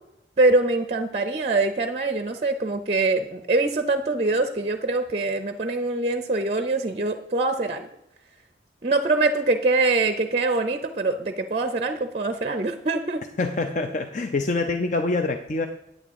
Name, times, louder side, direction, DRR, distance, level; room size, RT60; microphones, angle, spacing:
voice 1, 0.4-7.9 8.8-13.2, right 3 dB, 35° right, 8 dB, 0.5 m, -24 dB
voice 2, 13.4-15.7, left 3 dB, 40° left, 6 dB, 0.5 m, -25 dB
9.1 x 8.5 x 3.6 m, 0.82 s
head